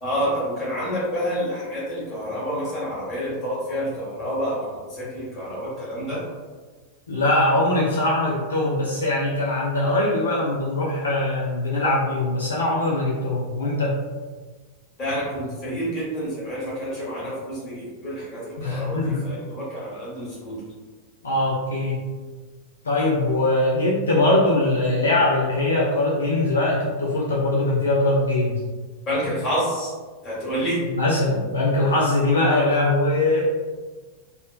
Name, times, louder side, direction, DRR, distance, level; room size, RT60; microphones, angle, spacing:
voice 1, 0.0-6.2 15.0-20.6 29.1-29.9 30.2-30.8, equal, 30° left, -7 dB, 1.3 m, -28 dB
voice 2, 7.1-14.0 18.6-19.2 21.2-22.0 22.8-28.6 30.9-33.4, left 2 dB, 70° left, -5 dB, 0.4 m, -21 dB
3.0 x 2.0 x 2.2 m, 1.4 s
figure-of-eight pair, 90°, 0 cm